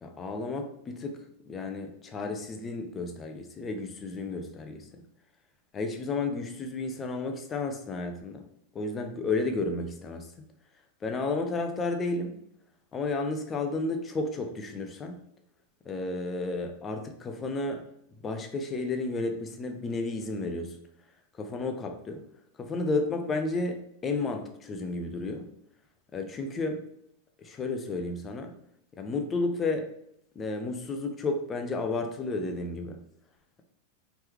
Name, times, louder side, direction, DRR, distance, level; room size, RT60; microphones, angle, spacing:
voice 1, 0.0-1.2 1.4-5.0 5.7-8.4 8.7-10.5 11.0-12.4 12.9-15.2 15.8-17.8 18.2-20.8 21.4-22.2 22.6-25.5 26.1-26.8 27.4-28.5 29.0-29.9 30.4-33.0, left 3 dB, 20° left, 5 dB, 0.6 m, -32 dB
4.5 x 3.4 x 3.0 m, 0.76 s
figure-of-eight pair, 90°, 0 cm